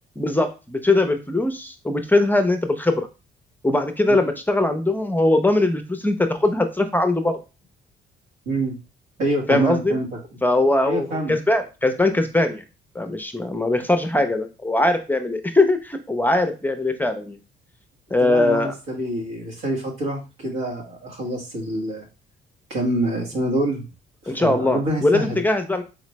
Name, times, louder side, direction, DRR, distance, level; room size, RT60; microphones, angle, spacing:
voice 1, 0.2-3.1 3.6-7.4 9.5-10.0 10.4-12.6 12.9-17.4 18.1-18.7 24.3-25.8, left 2 dB, 10° left, 6 dB, 0.6 m, -21 dB
voice 2, 8.5-8.8 9.2-10.1 10.8-11.3 18.2-22.1 22.7-23.8 24.2-25.4, right 1 dB, 85° right, -2 dB, 1.6 m, -26 dB
4.0 x 3.1 x 3.0 m, 0.30 s
cardioid pair, 90°, 20 cm